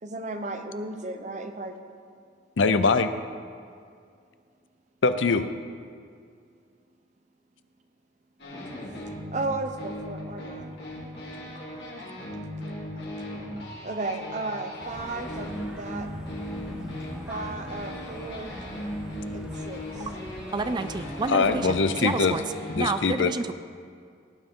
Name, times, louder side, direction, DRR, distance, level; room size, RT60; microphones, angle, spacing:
voice 1, 0.0-1.8 9.3-10.7 13.8-16.1 17.3-18.6 19.3-20.1, right 2 dB, 40° right, 6 dB, 0.8 m, -34 dB
voice 2, 2.6-3.1 5.0-5.5 21.3-22.4 22.7-23.3, left 4 dB, 85° left, 11 dB, 0.6 m, -22 dB
sound 1, 8.4-22.9, left 1 dB, 65° left, 2.9 m, -38 dB
sound 2, 14.8-21.8, equal, 5° right, 1.3 m, -42 dB
voice 3, 20.5-22.4 22.8-23.5, right 3 dB, 25° right, 11 dB, 0.3 m, -29 dB
17.5 x 9.1 x 3.8 m, 2.3 s
head